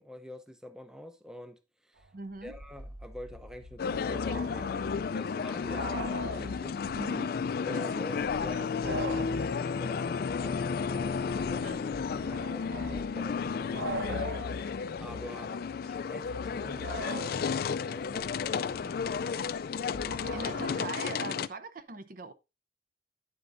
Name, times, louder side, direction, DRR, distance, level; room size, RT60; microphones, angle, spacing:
voice 1, 0.0-2.1 2.4-6.8 7.6-11.7 12.1-14.6 15.0-19.0, equal, 5° right, 0.6 m, -46 dB
sound 1, 2.0-2.1 2.3-7.2 7.5-7.6 8.1-20.8, equal, 70° right, 1.0 m, -42 dB
voice 2, 2.1-2.5 6.9-7.4 7.7-8.1 8.4-8.7 11.6-11.9 20.3-22.3, right 3 dB, 45° right, 0.6 m, -42 dB
sound 2, 2.4-5.7, equal, 25° right, 1.7 m, -52 dB
sound 3, 3.8-21.5, left 6 dB, 50° left, 0.3 m, -33 dB
9.5 x 7.5 x 2.6 m
head